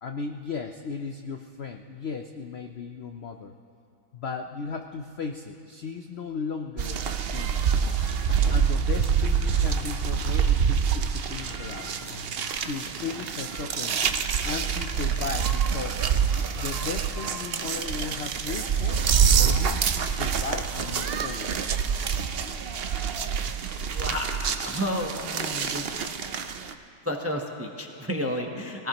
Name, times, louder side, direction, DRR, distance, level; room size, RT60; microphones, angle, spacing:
voice 1, 0.0-3.5 4.1-7.1 7.3-7.7 8.5-11.9 12.6-14.0 14.4-16.1 16.5-19.1 19.4-21.6, left 5 dB, 70° left, 5 dB, 0.6 m, -36 dB
sound 1, 6.8-26.7, right 7 dB, 65° right, 0.6 m, -26 dB
sound 2, 7.6-19.5, left 1 dB, 45° left, 1.9 m, -48 dB
voice 2, 23.9-25.9 27.0-28.9, left 1 dB, 15° right, 2 dB, 0.6 m, -31 dB
22.5 x 18.5 x 3.0 m, 2.4 s
omnidirectional pair, 1.8 m